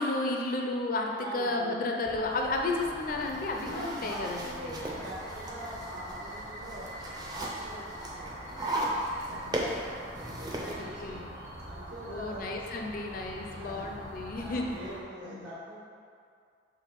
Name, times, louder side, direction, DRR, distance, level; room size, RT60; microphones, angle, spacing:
voice 1, 0.0-4.8 9.3-9.5 10.8-11.3 12.0-14.8 15.2-15.5, left 2 dB, 45° left, 1 dB, 0.5 m, -33 dB
voice 2, 1.1-1.8 3.6-6.9 7.3-8.8 9.3-9.9 10.2-11.2 11.7-12.5 13.5-13.9 14.3-15.8, equal, 65° right, -9 dB, 1.5 m, -43 dB
sound 1, 2.0-15.0, right 1 dB, 50° right, 1.5 m, -43 dB
sound 2, 3.0-10.7, right 1 dB, 20° right, 0.6 m, -37 dB
5.9 x 3.7 x 4.5 m, 2.3 s
head